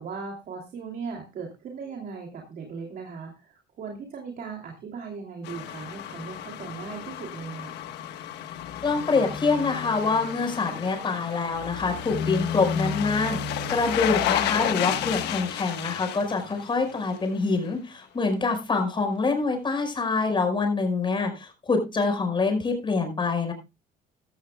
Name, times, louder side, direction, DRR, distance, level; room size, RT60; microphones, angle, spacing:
voice 1, 0.0-7.7 14.1-14.4, right 5 dB, 60° right, 1 dB, 3.0 m, -38 dB
sound 1, 5.4-17.3 17.7-17.8, left 9 dB, 80° left, 1.4 m, -31 dB
voice 2, 8.8-23.5, left 4 dB, 30° left, 5 dB, 5.2 m, -25 dB
16.0 x 12.5 x 2.3 m, 0.27 s
cardioid pair, 110°, 17 cm